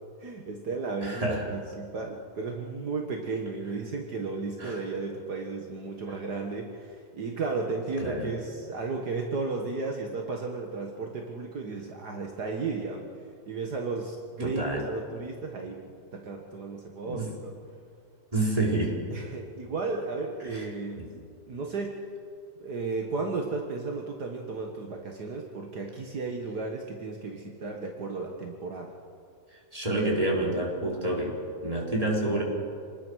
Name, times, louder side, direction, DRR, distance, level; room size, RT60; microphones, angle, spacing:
voice 1, 0.2-13.1 13.5-17.6 19.1-21.1 21.5-22.0 22.6-28.9, right 3 dB, 65° right, 2 dB, 2.1 m, -34 dB
voice 2, 1.0-1.4 4.6-4.8 8.0-8.3 14.4-14.8 17.0-17.3 18.3-19.0 20.4-20.6 21.0-21.1 29.7-31.4 31.6-32.4, right 1 dB, 20° right, -2 dB, 4.3 m, -28 dB
27.5 x 20.0 x 6.4 m, 2.3 s
omnidirectional pair, 1.9 m